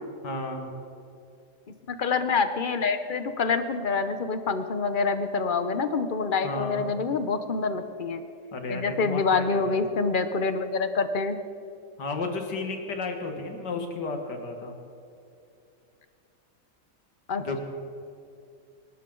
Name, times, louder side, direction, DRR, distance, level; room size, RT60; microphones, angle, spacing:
voice 1, 0.2-0.7 6.4-7.0 8.5-9.8 12.0-14.7 17.4-17.6, left 3 dB, 80° left, 4 dB, 2.3 m, -33 dB
voice 2, 1.9-8.2 8.7-11.4 17.3-17.6, left 4 dB, 50° left, 9 dB, 0.6 m, -26 dB
26.5 x 12.5 x 3.9 m, 2.5 s
omnidirectional pair, 1.8 m